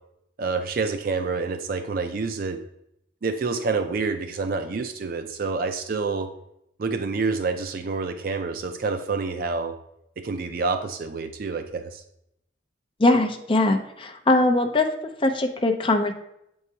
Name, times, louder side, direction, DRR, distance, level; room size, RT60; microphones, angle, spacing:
voice 1, 0.4-2.6 3.2-6.3 6.8-9.8 10.2-12.0, right 4 dB, 50° right, 8 dB, 0.4 m, -28 dB
voice 2, 13.0-14.9 15.2-16.1, left 2 dB, 30° left, 5 dB, 0.6 m, -21 dB
7.7 x 4.7 x 2.8 m, 0.78 s
head